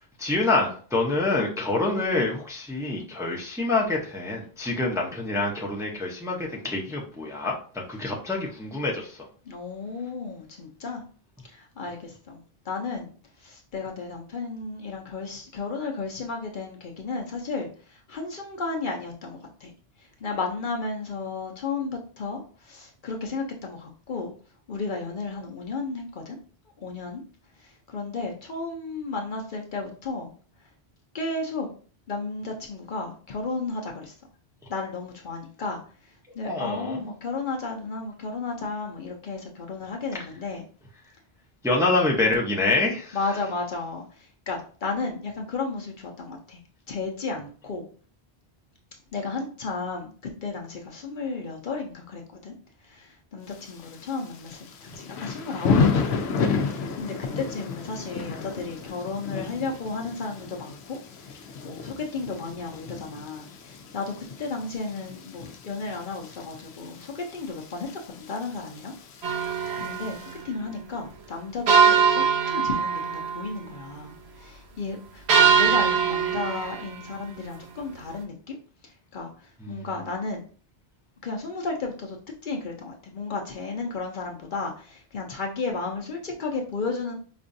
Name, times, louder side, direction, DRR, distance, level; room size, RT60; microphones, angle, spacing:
voice 1, 0.2-9.3 36.4-37.1 41.6-43.2 79.6-79.9, left 2 dB, 5° right, -2 dB, 0.6 m, -26 dB
voice 2, 9.4-11.0 11.4-13.1 13.4-19.7 20.0-24.3 24.7-26.4 26.8-27.2 27.6-30.3 31.1-31.7 32.1-34.1 34.7-40.6 42.3-42.4 43.1-46.6 46.9-47.9 49.1-52.5 52.8-68.9 69.4-78.6 78.8-80.4 81.2-82.2 82.4-87.1, left 3 dB, 55° left, 1 dB, 0.8 m, -33 dB
Thunder / Rain, 53.5-70.4, left 5 dB, 90° left, 0.9 m, -32 dB
sound 1, 69.2-70.1 71.7-73.5 75.3-76.9, right 6 dB, 85° right, 0.9 m, -21 dB
5.1 x 2.4 x 2.6 m, 0.41 s
omnidirectional pair, 1.1 m